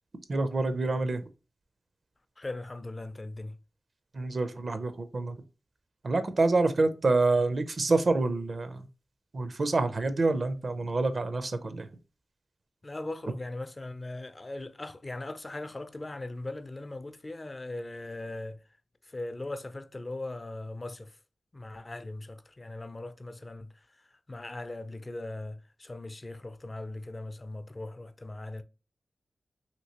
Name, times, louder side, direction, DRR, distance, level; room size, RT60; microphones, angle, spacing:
voice 1, 0.3-1.2 4.1-5.3 6.0-8.8 9.3-11.9, right 3 dB, 60° right, 0.5 m, -27 dB
voice 2, 2.4-3.5 12.8-18.6 19.1-21.1 21.5-23.7 24.3-28.6, left 2 dB, 35° left, 0.4 m, -39 dB
2.9 x 2.8 x 2.8 m
cardioid pair, 50°, 0 cm